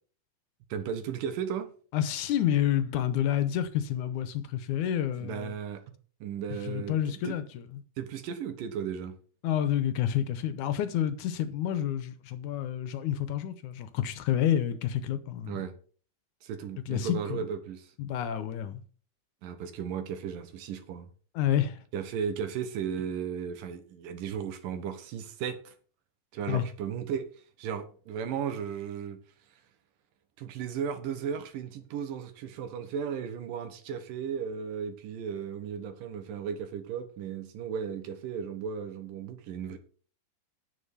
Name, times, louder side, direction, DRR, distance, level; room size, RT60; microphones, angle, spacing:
voice 1, 0.7-1.7 5.2-5.8 6.2-7.4 8.0-9.2 15.5-15.7 16.4-17.9 19.4-21.1 21.9-25.7 26.3-27.3 27.6-29.2 30.4-39.8, right 7 dB, 85° right, 3.0 m, -35 dB
voice 2, 1.9-5.5 6.7-7.8 9.4-15.6 16.9-17.4 18.0-18.8 21.4-21.8 26.5-26.6, left 10 dB, 75° left, 2.2 m, -29 dB
10.0 x 7.3 x 5.5 m
omnidirectional pair, 3.8 m